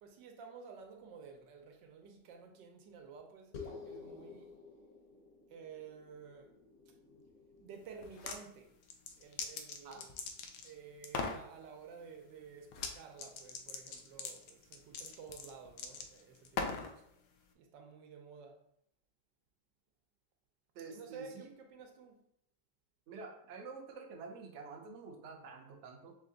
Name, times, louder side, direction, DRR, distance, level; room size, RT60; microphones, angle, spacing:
voice 1, 0.0-4.5 5.5-6.6 7.6-8.7 9.2-10.2 10.6-17.0 17.5-18.6 20.9-22.2, right 6 dB, 85° right, 1.4 m, -52 dB
sound 1, 3.5-8.3, left 5 dB, 55° left, 1.0 m, -52 dB
sound 2, 8.0-8.4 8.8-10.7 11.0-11.4 12.7-12.9 13.2-16.9, left 5 dB, 75° left, 1.1 m, -40 dB
voice 2, 20.7-21.5 23.1-26.2, right 4 dB, 60° right, 0.8 m, -48 dB
3.6 x 3.3 x 3.8 m
omnidirectional pair, 1.9 m